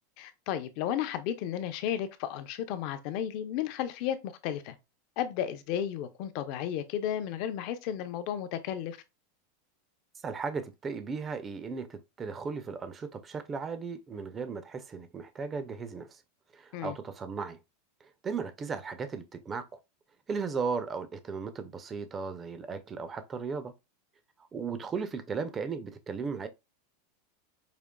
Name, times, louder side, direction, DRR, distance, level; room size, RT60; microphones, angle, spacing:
voice 1, 0.2-4.8 5.2-9.0 16.7-17.0, left 10 dB, 40° left, 0.5 m, -33 dB
voice 2, 10.2-16.2 16.5-17.6 18.2-19.8 20.3-23.7 24.5-26.5, right 5 dB, 15° right, 0.4 m, -36 dB
5.1 x 2.8 x 2.2 m
supercardioid pair, 170°, 0 cm